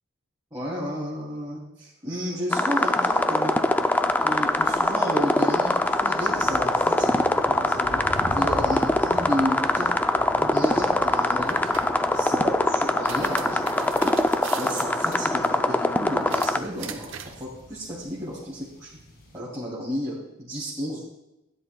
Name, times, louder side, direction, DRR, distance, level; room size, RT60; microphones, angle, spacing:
voice 1, 0.5-3.5 4.2-8.0 8.3-9.9 10.4-11.7 12.1-18.9 19.3-21.0, equal, 15° right, -10 dB, 2.6 m, -32 dB
sound 1, 2.5-16.6, left 1 dB, 10° left, 0.3 m, -23 dB
sound 2, 2.7-19.4, equal, 45° left, 1.9 m, -43 dB
sound 3, 11.5-12.0 12.8-15.4 16.2-17.4, right 7 dB, 65° right, 0.8 m, -40 dB
16.5 x 10.0 x 2.2 m, 0.91 s
head